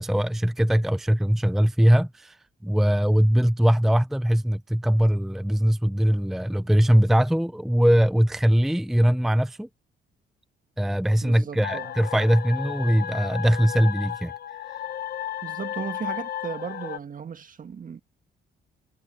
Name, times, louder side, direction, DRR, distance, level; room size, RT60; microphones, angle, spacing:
voice 1, 0.0-2.4 2.6-9.7 10.8-14.3, equal, ahead, 0.6 m, -21 dB
voice 2, 11.2-11.9 15.4-18.0, right 6 dB, 45° right, 1.5 m, -36 dB
sound 1, 11.6-17.0, left 10 dB, 55° left, 0.8 m, -34 dB
cardioid pair, 90°, 20 cm